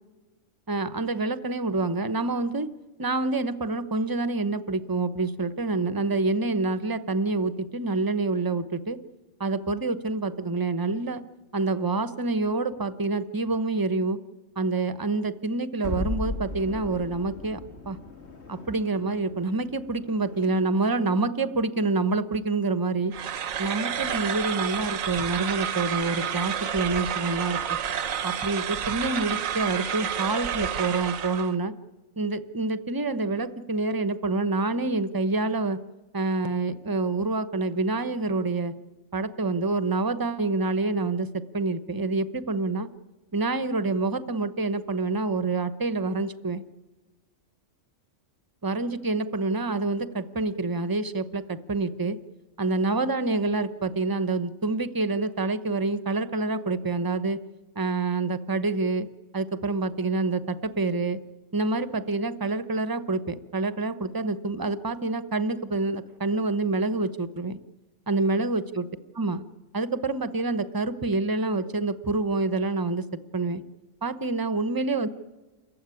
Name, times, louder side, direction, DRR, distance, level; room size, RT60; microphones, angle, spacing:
voice 1, 0.7-2.7 3.0-9.0 9.4-11.2 11.5-14.2 14.6-18.0 18.5-23.1 23.6-27.6 28.2-31.7 32.2-35.8 36.1-38.7 39.1-42.9 43.3-46.6 48.6-52.2 52.6-57.4 57.8-59.1 59.3-61.2 61.5-67.6 68.1-68.8 69.1-69.4 69.7-73.1 73.3-73.6 74.0-75.1, right 3 dB, 20° right, 13 dB, 0.7 m, -27 dB
sound 1, 15.8-20.9, left 1 dB, 55° left, 2.3 m, -37 dB
sound 2, 23.1-31.5, right 8 dB, 90° right, 1.4 m, -30 dB
28.0 x 15.0 x 9.8 m, 1.2 s
omnidirectional pair, 1.4 m